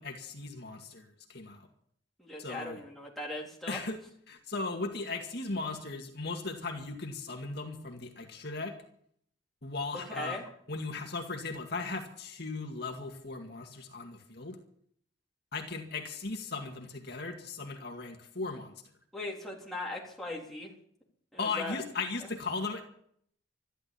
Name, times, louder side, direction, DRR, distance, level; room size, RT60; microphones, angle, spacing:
voice 1, 0.0-1.7 2.4-2.8 3.7-4.0 4.3-8.8 9.6-10.4 10.7-14.6 15.5-18.7 21.4-22.8, left 3 dB, 55° left, 3 dB, 2.0 m, -37 dB
voice 2, 2.2-3.8 10.1-10.4 19.1-20.7 21.3-21.8, left 2 dB, ahead, -3 dB, 3.6 m, -39 dB
13.5 x 12.5 x 8.5 m, 0.65 s
head